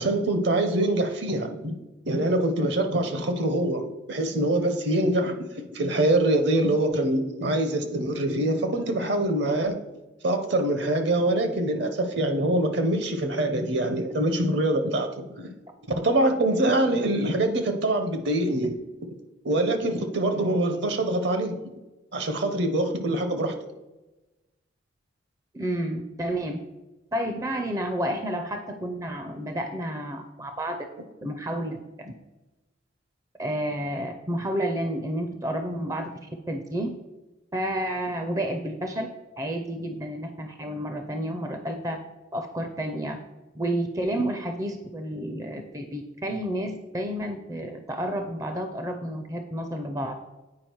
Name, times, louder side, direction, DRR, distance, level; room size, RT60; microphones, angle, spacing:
voice 1, 0.0-1.8 2.1-9.8 10.2-15.5 16.0-18.7 19.4-21.6 22.1-23.5, right 1 dB, 60° right, 7 dB, 0.9 m, -24 dB
voice 2, 25.5-26.6 27.1-30.8 31.2-32.1 33.4-36.9 37.5-39.1 39.4-42.0 42.3-43.2 43.5-50.1, right 1 dB, 15° right, 6 dB, 0.5 m, -30 dB
8.6 x 4.9 x 4.5 m, 1.1 s
head